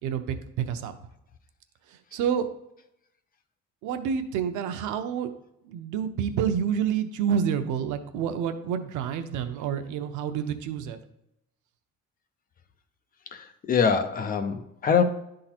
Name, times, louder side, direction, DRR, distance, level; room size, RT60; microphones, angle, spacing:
voice 1, 0.0-0.9 1.9-2.5 3.8-5.3 5.6-11.0, right 8 dB, 90° right, 8 dB, 0.8 m, -28 dB
voice 2, 13.3-15.0, left 6 dB, 30° left, 9 dB, 0.5 m, -24 dB
10.5 x 3.9 x 4.3 m, 0.83 s
cardioid pair, 175°, 29 cm